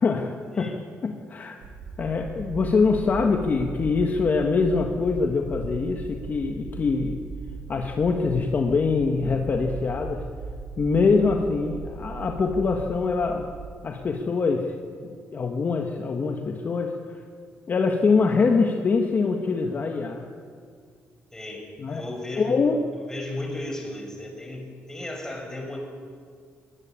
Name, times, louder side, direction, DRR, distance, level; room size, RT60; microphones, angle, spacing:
voice 1, 0.0-0.7 1.0-1.6 2.0-7.2 7.7-10.2 10.8-13.5 13.8-17.2 17.7-20.3 21.8-22.0 22.4-22.8, left 4 dB, 40° left, 3 dB, 1.7 m, -24 dB
sound 1, 1.6-13.7, right 4 dB, 85° right, 4.6 m, -38 dB
voice 2, 21.3-22.6 23.1-25.8, left 1 dB, 10° left, 2 dB, 5.8 m, -35 dB
22.0 x 19.5 x 9.0 m, 2.1 s
cardioid pair, 130°, 5 cm